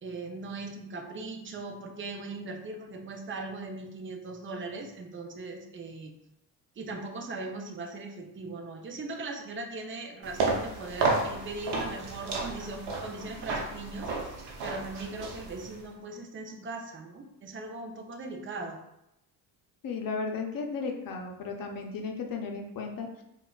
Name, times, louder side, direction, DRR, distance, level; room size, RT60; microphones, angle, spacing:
voice 1, 0.0-6.1 6.8-18.8, right 3 dB, 30° right, 3 dB, 0.6 m, -39 dB
sound 1, 10.2-15.9, right 3 dB, 90° right, 0.8 m, -32 dB
voice 2, 19.8-23.2, left 4 dB, 55° left, 3 dB, 0.6 m, -35 dB
4.0 x 2.3 x 2.3 m, 0.83 s
cardioid pair, 85°, 41 cm